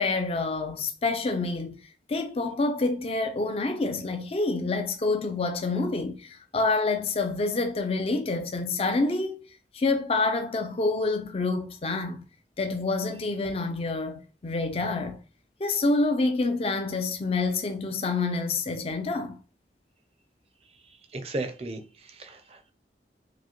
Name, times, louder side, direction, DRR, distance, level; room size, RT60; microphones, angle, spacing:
voice 1, 0.0-1.8 2.1-9.5 9.7-12.2 12.6-15.2 15.6-19.4, left 3 dB, 35° left, 0.4 m, -27 dB
voice 2, 21.1-22.7, right 2 dB, 35° right, 0.5 m, -35 dB
4.9 x 2.1 x 2.8 m
head